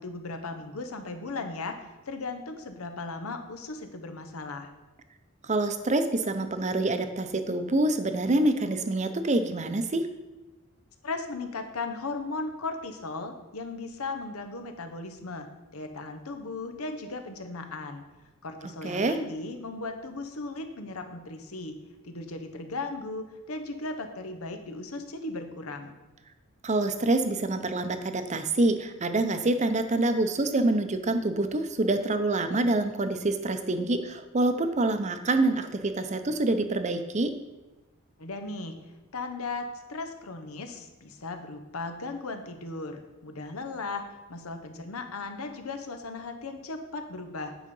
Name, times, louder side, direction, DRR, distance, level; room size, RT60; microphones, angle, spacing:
voice 1, 0.0-4.7 11.0-15.5 15.7-18.0 18.4-21.7 22.0-26.0 38.2-38.8 39.1-44.0 44.3-47.5, left 3 dB, 90° left, 6 dB, 1.0 m, -37 dB
voice 2, 5.4-10.1 18.8-19.2 26.6-37.3, right 2 dB, 35° right, 9 dB, 0.6 m, -26 dB
9.2 x 5.0 x 5.4 m, 1.1 s
head